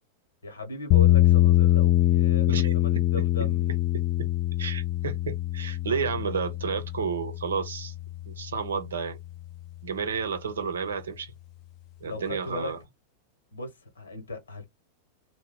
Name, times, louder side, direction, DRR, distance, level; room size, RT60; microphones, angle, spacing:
voice 1, 0.4-3.8 12.0-12.7 13.5-14.7, left 2 dB, 75° left, 1.1 m, -37 dB
sound 1, 0.9-9.0, left 14 dB, 40° left, 0.3 m, -24 dB
voice 2, 3.9-4.3 4.6-7.9 8.3-9.2 9.8-11.3 12.0-12.8, right 6 dB, 70° right, 0.7 m, -31 dB
3.1 x 2.2 x 2.2 m
figure-of-eight pair, 90°, 0 cm